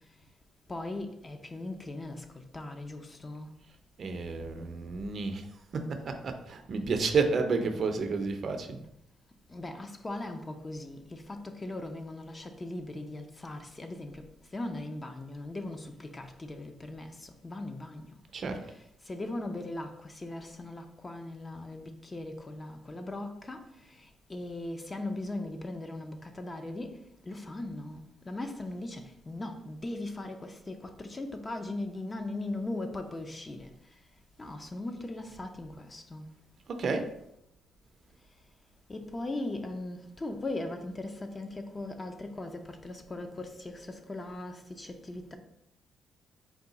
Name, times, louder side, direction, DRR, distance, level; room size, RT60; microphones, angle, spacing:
voice 1, 0.7-2.2 2.5-3.5 9.5-14.2 14.5-18.1 19.1-23.6 24.3-27.0 27.3-33.7 34.4-36.3 38.9-45.4, left 2 dB, 25° left, 0.5 m, -39 dB
voice 2, 4.0-5.5 5.7-8.8 18.3-18.7 36.7-37.1, right 4 dB, 50° right, 0.5 m, -31 dB
4.6 x 2.3 x 3.9 m
cardioid pair, 90°, 0 cm